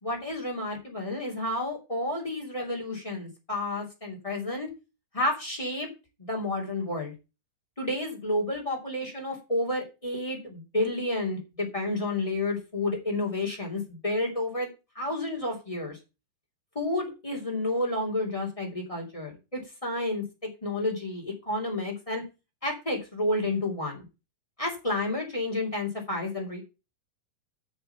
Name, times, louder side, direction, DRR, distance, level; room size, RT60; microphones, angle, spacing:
voice 1, 0.0-4.7 5.1-5.9 6.2-7.1 7.8-14.7 14.9-16.0 16.7-22.2 22.6-24.0 24.6-26.6, left 2 dB, 10° left, 0 dB, 1.7 m, -30 dB
6.9 x 6.5 x 6.7 m, 0.28 s
omnidirectional pair, 5.0 m